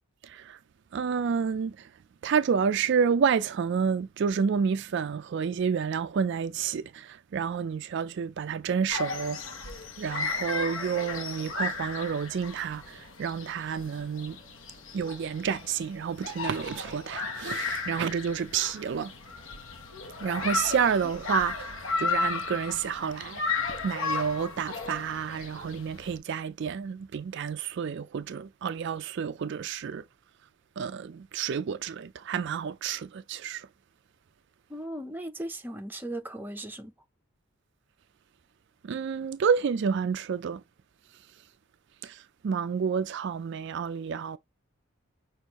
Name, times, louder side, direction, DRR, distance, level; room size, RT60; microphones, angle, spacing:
voice 1, 0.2-0.6 0.9-1.9 2.2-9.4 10.0-14.4 14.9-19.1 20.2-30.0 30.8-33.7 38.8-40.6 42.0-44.4, right 6 dB, 55° right, 0.3 m, -29 dB
sound 1, 8.9-26.2, left 4 dB, 65° left, 1.1 m, -35 dB
voice 2, 34.7-36.9, right 1 dB, 10° right, 0.6 m, -37 dB
6.2 x 2.5 x 2.9 m
head